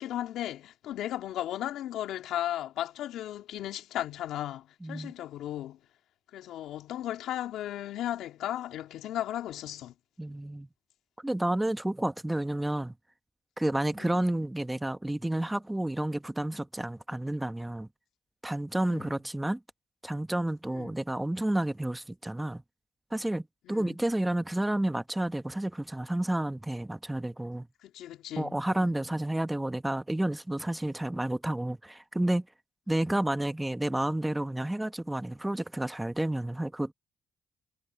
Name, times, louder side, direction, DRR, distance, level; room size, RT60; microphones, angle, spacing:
voice 1, 0.0-5.8 6.3-9.9 14.0-14.1 18.8-19.1 20.7-20.9 23.6-23.9 27.8-28.9, left 12 dB, 85° left, 2.8 m, -36 dB
voice 2, 4.8-5.1 10.2-10.7 11.2-12.9 13.6-17.9 18.4-19.6 20.0-22.6 23.1-27.7 28.4-32.5 32.9-36.9, right 1 dB, 10° right, 1.1 m, -30 dB
cardioid pair, 90°, 0 cm